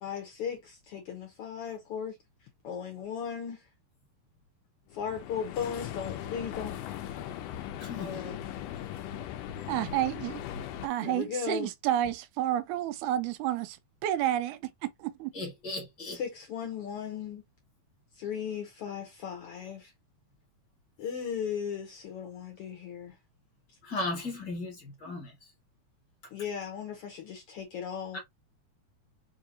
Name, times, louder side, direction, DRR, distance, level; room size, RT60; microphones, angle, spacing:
voice 1, 0.0-3.7 4.9-6.8 8.0-8.4 11.0-11.7 16.1-17.4 18.1-19.9 21.0-23.2 25.0-25.1 26.3-28.2, left 7 dB, 70° left, 1.4 m, -37 dB
sound 1, 4.9-10.9, left 11 dB, 85° left, 1.4 m, -39 dB
voice 2, 7.8-8.3 15.3-16.2 23.8-25.3 28.1-28.2, left 2 dB, 45° left, 1.6 m, -36 dB
voice 3, 9.7-10.4 10.8-13.8 14.0-15.3, right 12 dB, 90° right, 2.0 m, -30 dB
4.8 x 2.7 x 2.6 m
omnidirectional pair, 3.4 m